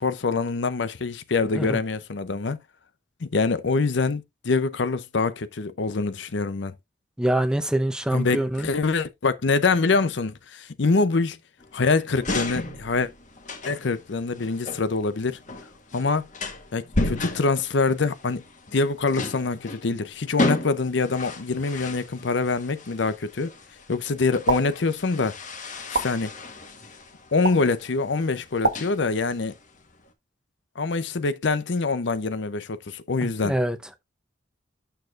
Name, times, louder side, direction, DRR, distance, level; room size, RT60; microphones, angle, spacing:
voice 1, 0.0-2.6 3.2-6.7 8.1-11.4 11.7-13.1 13.6-15.4 15.9-16.3 16.7-18.4 18.7-23.5 23.9-25.4 25.9-26.3 27.3-29.5 30.8-33.6, left 4 dB, 65° left, 0.6 m, -25 dB
voice 2, 7.2-8.7 33.2-33.8, right 1 dB, 5° right, 0.6 m, -25 dB
sound 1, 11.6-30.1, left 2 dB, 40° left, 1.3 m, -34 dB
sound 2, 24.5-24.6 25.9-26.1 27.4-27.6 28.6-28.8, right 3 dB, 55° right, 1.2 m, -23 dB
9.0 x 6.4 x 2.5 m
head